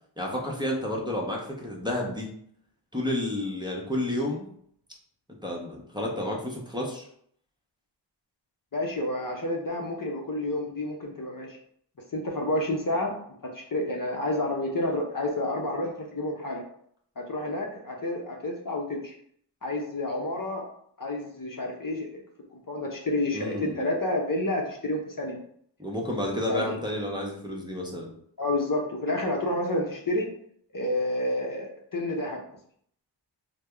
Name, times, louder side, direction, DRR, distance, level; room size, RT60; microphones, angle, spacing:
voice 1, 0.2-2.3 2.9-4.5 5.4-7.1 23.3-23.8 25.8-28.1, left 1 dB, 10° right, -3 dB, 0.8 m, -30 dB
voice 2, 8.7-11.6 12.1-13.2 13.4-16.6 17.2-19.1 19.6-20.6 21.0-22.2 22.5-25.4 26.5-26.8 28.4-30.3 30.7-32.4, left 1 dB, 45° left, 0 dB, 0.7 m, -29 dB
3.3 x 2.1 x 3.3 m, 0.65 s
cardioid pair, 45°, 48 cm